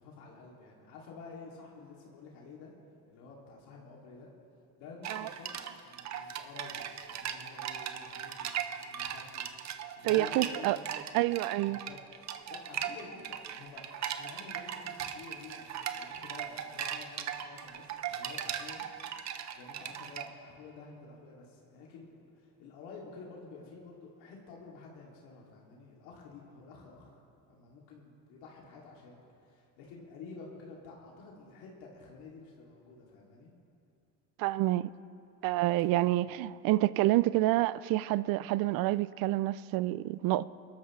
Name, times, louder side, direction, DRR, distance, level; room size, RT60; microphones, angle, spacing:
voice 1, 0.0-2.7 3.1-4.3 4.8-8.5 8.8-9.5 10.0-11.0 11.6-12.0 12.5-13.8 14.2-18.9 19.5-27.2 27.5-33.5 36.1-36.2, left 4 dB, 85° left, 2.7 m, -50 dB
sound 1, 5.0-20.3, right 9 dB, 45° right, 0.8 m, -39 dB
voice 2, 10.0-10.8 11.1-11.8 34.4-34.9 35.4-40.5, right 17 dB, 65° right, 0.5 m, -28 dB
22.5 x 13.0 x 3.2 m
cardioid pair, 120°, 38 cm